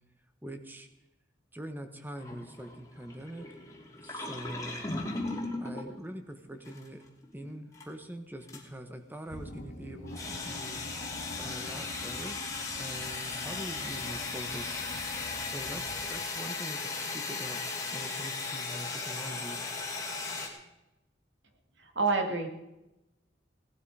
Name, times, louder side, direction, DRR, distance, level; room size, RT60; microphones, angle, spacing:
voice 1, 0.4-0.9 1.5-3.5 4.0-4.9 5.6-7.0 7.3-10.8 11.4-12.4 12.8-14.8 15.4-17.6 17.9-19.6, right 1 dB, 10° right, 7 dB, 1.3 m, -43 dB
sound 1, 2.2-5.9 6.7-6.9 7.2-7.8 8.5-8.7 10.1-20.5, left 3 dB, 15° left, 2.6 m, -37 dB
sound 2, 9.3-16.5, left 1 dB, 80° left, 1.9 m, -46 dB
voice 2, 21.8-22.5, right 3 dB, 75° right, 4 dB, 2.4 m, -28 dB
18.0 x 12.5 x 4.9 m, 0.95 s
head